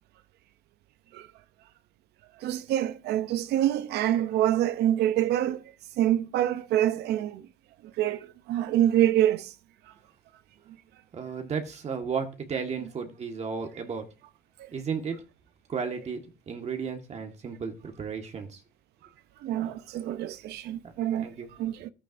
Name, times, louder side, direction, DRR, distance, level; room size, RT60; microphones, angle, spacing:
voice 1, 2.4-5.6 6.0-7.4 8.0-9.5 14.6-14.7 19.4-21.3 21.6-21.9, right 12 dB, 75° right, 0.7 m, -26 dB
voice 2, 11.1-14.1 14.7-15.2 15.7-18.6 19.6-19.7 21.2-21.5, right 6 dB, 40° right, 1.6 m, -34 dB
13.5 x 8.7 x 2.6 m
cardioid pair, 110°, 17 cm